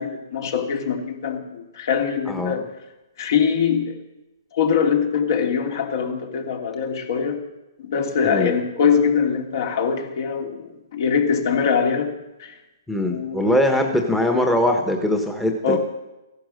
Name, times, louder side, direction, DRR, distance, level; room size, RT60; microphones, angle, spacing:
voice 1, 0.0-2.6 3.2-4.0 4.5-7.4 7.8-12.1 12.4-12.6 13.0-13.6 15.6-15.8, left 6 dB, 60° left, 3 dB, 2.7 m, -23 dB
voice 2, 2.3-2.6 8.2-8.5 12.9-15.8, left 1 dB, 5° left, 2 dB, 1.2 m, -21 dB
15.5 x 11.5 x 6.5 m, 1.0 s
hypercardioid pair, 145°, 2 cm